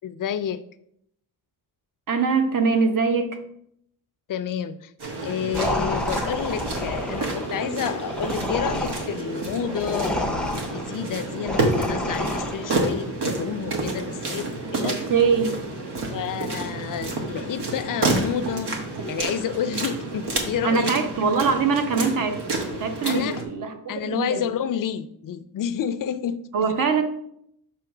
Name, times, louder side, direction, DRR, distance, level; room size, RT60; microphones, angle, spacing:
voice 1, 0.0-0.6 4.3-4.9 5.2-15.0 16.1-18.8 19.1-20.9 23.0-23.4 23.9-26.9, left 9 dB, 55° left, 12 dB, 0.5 m, -30 dB
voice 2, 2.1-3.4 14.8-15.6 20.6-22.4 22.8-24.4 26.5-27.0, right 5 dB, 55° right, 6 dB, 0.9 m, -23 dB
sound 1, 5.0-23.4, right 2 dB, 80° right, 1.4 m, -29 dB
sound 2, 5.5-12.9, left 1 dB, ahead, 0.5 m, -30 dB
6.9 x 3.1 x 5.9 m, 0.72 s
wide cardioid pair, 155°, 39 cm